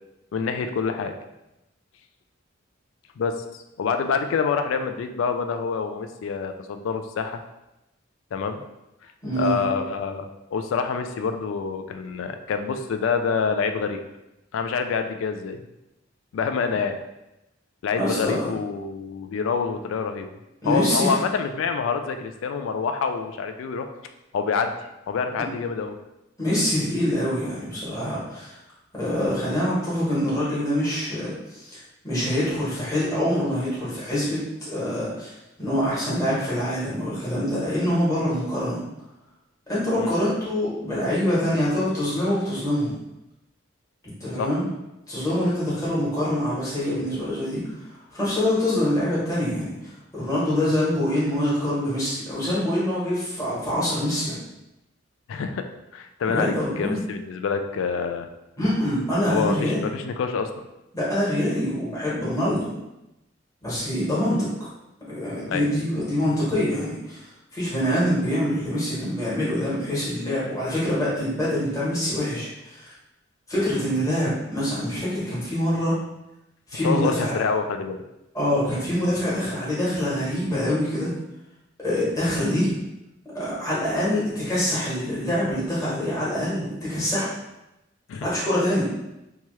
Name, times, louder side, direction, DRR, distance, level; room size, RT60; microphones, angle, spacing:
voice 1, 0.3-1.2 3.2-7.4 8.3-8.6 9.4-14.0 14.5-15.6 16.3-17.0 17.8-20.3 20.7-23.9 24.3-24.8 25.1-26.0 40.0-40.1 44.4-44.5 55.3-55.7 55.9-58.3 59.3-60.5 62.5-62.6 65.5-65.7 76.8-78.0 88.1-88.3, left 5 dB, 85° left, 7 dB, 0.3 m, -26 dB
voice 2, 9.2-9.6 17.9-18.5 20.6-21.1 25.4-25.5 26.4-28.6 28.9-38.8 39.7-43.0 44.2-44.6 45.1-54.4 56.2-57.0 58.6-59.8 60.9-62.7 63.6-64.7 65.1-72.9 73.5-76.0 76.7-77.4 78.3-81.1 81.8-82.7 83.3-87.3 88.2-88.9, equal, 15° left, -9 dB, 1.1 m, -25 dB
2.8 x 2.3 x 3.1 m, 0.92 s
head